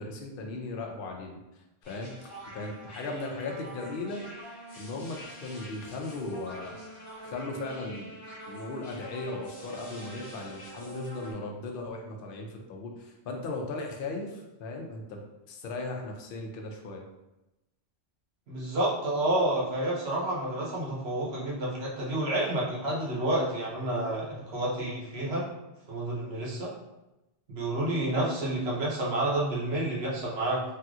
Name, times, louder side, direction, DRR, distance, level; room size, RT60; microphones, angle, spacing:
voice 1, 0.0-1.4 1.9-4.2 4.8-6.8 7.2-8.1 8.5-17.0, left 2 dB, 60° left, 1 dB, 0.7 m, -37 dB
sound 1, 1.8-11.3, right 1 dB, 30° left, 0.8 m, -46 dB
voice 2, 18.5-25.4 25.9-26.7 27.5-30.6, right 1 dB, 75° right, -5 dB, 1.1 m, -29 dB
3.2 x 2.8 x 2.3 m, 0.95 s
omnidirectional pair, 1.1 m